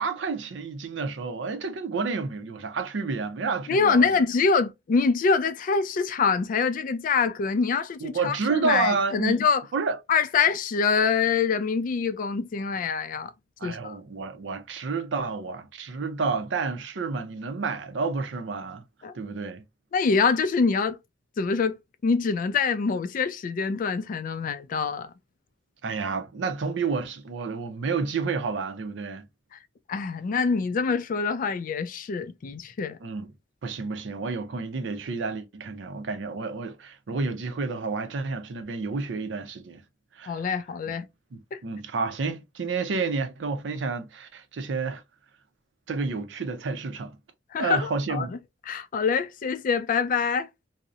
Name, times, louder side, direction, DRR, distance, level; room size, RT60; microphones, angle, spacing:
voice 1, 0.0-4.1 8.0-9.4 9.7-10.0 13.6-18.8 19.1-19.6 25.8-29.2 33.0-33.3 33.6-39.8 40.2-40.4 41.3-45.0 45.9-47.2 47.6-48.3, right 4 dB, 75° right, 0.5 m, -30 dB
voice 2, 3.7-9.6 10.1-13.3 13.6-14.0 19.0-19.1 19.9-21.0 21.4-21.8 22.0-25.1 29.5-29.6 29.9-33.0 40.3-41.1 41.5-41.6 47.5-48.4 48.7-50.5, left 5 dB, 45° left, 0.3 m, -25 dB
2.7 x 2.0 x 2.4 m
head